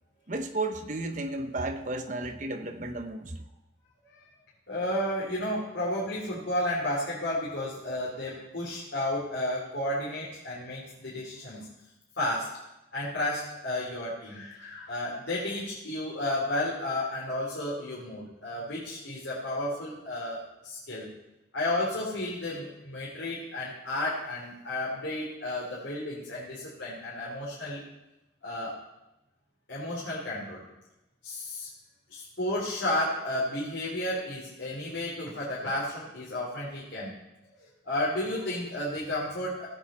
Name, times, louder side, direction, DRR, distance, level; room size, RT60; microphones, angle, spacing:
voice 1, 0.3-3.3, right 2 dB, 40° right, 7 dB, 1.0 m, -33 dB
voice 2, 4.7-11.7 12.2-12.6 12.9-21.1 21.5-27.8 28.4-28.8 29.7-30.6 31.2-31.7 32.1-37.1 37.8-39.7, left 1 dB, 80° left, -7 dB, 3.2 m, -32 dB
17.0 x 8.4 x 4.3 m, 0.95 s
head